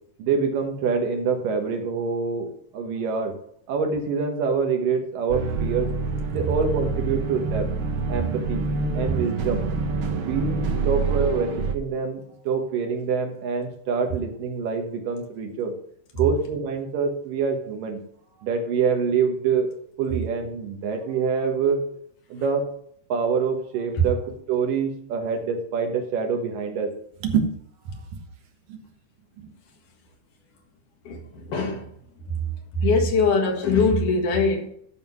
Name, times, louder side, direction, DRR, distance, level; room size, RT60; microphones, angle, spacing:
voice 1, 0.2-3.4 3.7-5.9 6.3-7.7 8.1-8.7 8.9-9.7 10.1-15.7 16.1-18.0 18.4-19.7 20.0-21.8 22.3-22.7 23.1-26.9 27.2-27.5 27.9-28.2 28.7-28.8 29.4-29.5, right 5 dB, 90° right, 4 dB, 3.0 m, -26 dB
sound 1, 5.3-11.7, right 4 dB, 70° right, 1.2 m, -27 dB
voice 2, 31.1-31.9 32.3-32.4 32.8-34.7, left 3 dB, 75° left, 3 dB, 3.1 m, -22 dB
12.0 x 5.5 x 5.9 m, 0.68 s
omnidirectional pair, 3.7 m